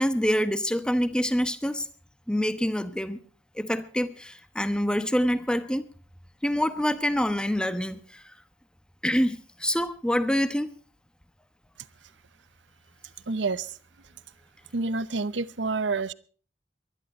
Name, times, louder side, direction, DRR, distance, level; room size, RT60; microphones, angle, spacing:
voice 1, 0.0-1.9 2.3-3.2 3.5-5.8 6.4-8.2 9.0-10.7, equal, 5° left, 12 dB, 1.0 m, -26 dB
voice 2, 13.3-13.8 14.7-16.1, right 3 dB, 75° right, 18 dB, 0.8 m, -28 dB
22.5 x 11.5 x 4.3 m, 0.43 s
head